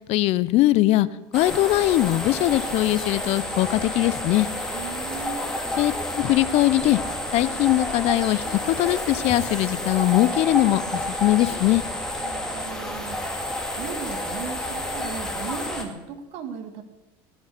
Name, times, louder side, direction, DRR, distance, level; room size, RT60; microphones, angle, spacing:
voice 1, 0.1-1.1 1.3-4.5 5.8-7.0 7.3-11.8, left 16 dB, 55° left, 17 dB, 0.6 m, -21 dB
sound 1, 1.3-15.8, left 1 dB, 5° left, 2.2 m, -30 dB
voice 2, 4.7-5.5 12.2-16.8, right 6 dB, 55° right, 7 dB, 1.8 m, -37 dB
17.0 x 6.2 x 8.4 m, 1.1 s
supercardioid pair, 105°, 13 cm